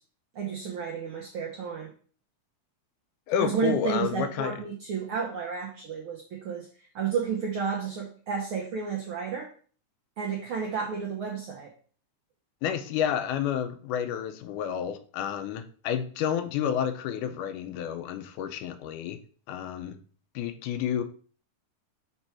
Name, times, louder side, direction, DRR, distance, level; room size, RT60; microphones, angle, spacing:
voice 1, 0.3-1.9 3.4-6.7 6.9-9.5 10.2-11.7, right 6 dB, 80° right, 0 dB, 1.2 m, -31 dB
voice 2, 3.3-4.6 12.6-19.2 19.5-20.0 20.4-21.0, left 9 dB, 85° left, 9 dB, 2.1 m, -30 dB
6.9 x 3.5 x 4.4 m, 0.43 s
omnidirectional pair, 3.5 m